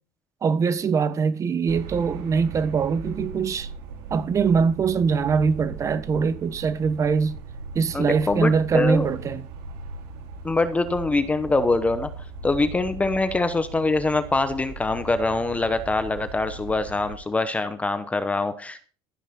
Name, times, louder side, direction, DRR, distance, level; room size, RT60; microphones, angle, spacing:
voice 1, 0.4-3.7 4.1-7.3 7.7-9.4, right 5 dB, 25° right, 1.2 m, -22 dB
sound 1, 1.7-17.2, right 4 dB, 75° right, 5.0 m, -39 dB
voice 2, 7.9-9.1 10.4-12.1 12.4-18.9, left 3 dB, 10° left, 0.9 m, -24 dB
14.0 x 9.9 x 4.3 m
cardioid pair, 160°, 12 cm